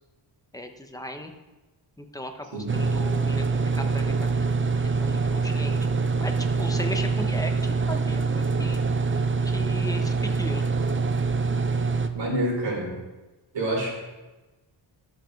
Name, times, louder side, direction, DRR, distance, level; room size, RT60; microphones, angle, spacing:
voice 1, 0.5-1.3 2.0-3.5 3.7-4.5 5.0-5.9 6.2-8.8 9.4-10.7, left 1 dB, 10° left, 4 dB, 0.9 m, -36 dB
sound 1, 2.7-12.1, right 4 dB, 25° right, 0.5 m, -25 dB
voice 2, 12.1-12.9 13.5-13.9, right 1 dB, 65° right, -3 dB, 4.1 m, -27 dB
11.5 x 7.8 x 5.3 m, 1.1 s
wide cardioid pair, 145°, 46 cm